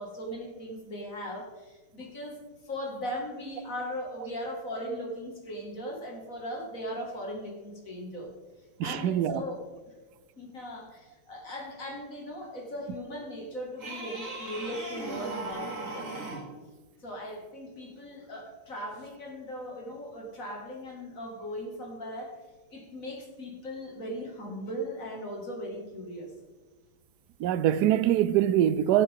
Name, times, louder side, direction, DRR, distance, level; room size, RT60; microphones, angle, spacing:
voice 1, 0.0-2.4 2.6-8.3 8.8-9.6 10.4-16.3 17.0-22.4 22.7-26.3, equal, 40° left, 2.6 m, -38 dB
voice 2, 8.8-9.4 27.4-29.0, right 11 dB, 80° right, 0.9 m, -24 dB
sound 1, 13.8-16.5 19.0-19.1, right 2 dB, 40° right, 2.7 m, -38 dB
17.0 x 8.4 x 3.7 m
omnidirectional pair, 2.2 m